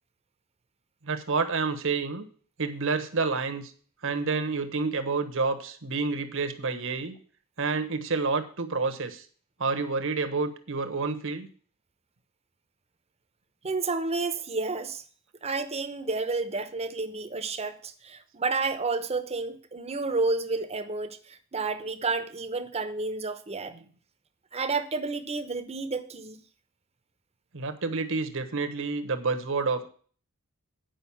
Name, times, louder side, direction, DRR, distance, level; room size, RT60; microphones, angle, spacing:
voice 1, 1.0-2.2 2.6-3.7 4.0-7.2 7.6-9.2 9.6-11.5 23.7-23.8 27.5-29.9, right 4 dB, 60° right, 1.1 m, -29 dB
voice 2, 13.6-15.0 15.4-23.7 24.5-26.4, right 3 dB, 30° right, 0.9 m, -30 dB
9.0 x 5.3 x 7.0 m
head